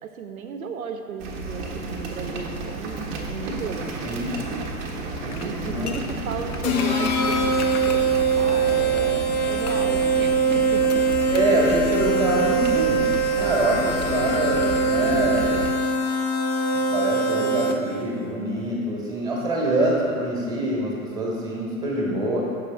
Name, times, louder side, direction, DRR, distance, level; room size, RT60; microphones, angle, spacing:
voice 1, 0.0-4.0 5.4-11.0 12.4-12.5, right 6 dB, 65° right, 7 dB, 0.7 m, -35 dB
sound 1, 1.2-15.7, right 2 dB, 25° right, 0.7 m, -33 dB
voice 2, 4.0-4.4 5.2-6.0 11.3-13.0 13.4-15.6 16.9-22.4, right 1 dB, 10° right, -3 dB, 1.1 m, -25 dB
sound 2, 5.3-9.1 9.7-10.0 10.9-11.6 11.8-11.9, left 6 dB, 80° left, 0.6 m, -39 dB
sound 3, 6.6-18.0, right 3 dB, 30° left, 0.5 m, -22 dB
6.8 x 4.9 x 3.4 m, 2.2 s
figure-of-eight pair, 110°, 45 cm